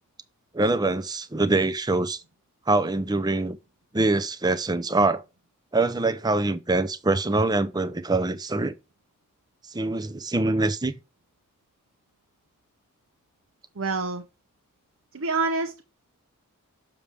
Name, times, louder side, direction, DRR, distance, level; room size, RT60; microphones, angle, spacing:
voice 1, 0.5-2.2 2.7-3.6 3.9-5.2 5.7-8.7 9.7-10.9, right 2 dB, 20° right, 0.6 m, -24 dB
voice 2, 13.8-14.2 15.1-15.8, right 3 dB, 60° right, 0.8 m, -27 dB
6.9 x 6.4 x 3.4 m
head